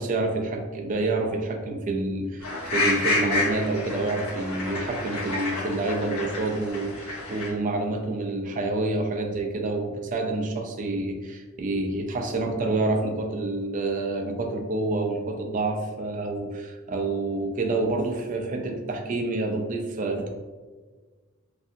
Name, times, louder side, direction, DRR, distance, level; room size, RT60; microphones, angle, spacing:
voice 1, 0.0-20.3, right 2 dB, 35° right, 3 dB, 0.3 m, -28 dB
sound 1, 2.4-7.5, left 2 dB, 80° left, 0.9 m, -29 dB
2.6 x 2.5 x 2.5 m, 1.4 s
head